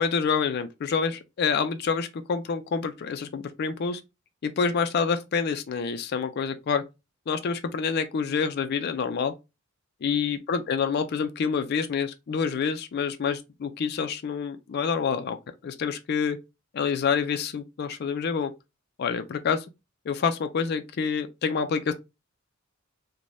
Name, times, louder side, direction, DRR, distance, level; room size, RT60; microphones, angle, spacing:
voice 1, 0.0-4.0 4.4-6.8 7.3-9.3 10.0-15.4 15.6-16.4 16.7-18.5 19.0-19.7 20.1-21.9, left 6 dB, 50° left, 0.4 m, -27 dB
3.2 x 2.1 x 2.5 m
head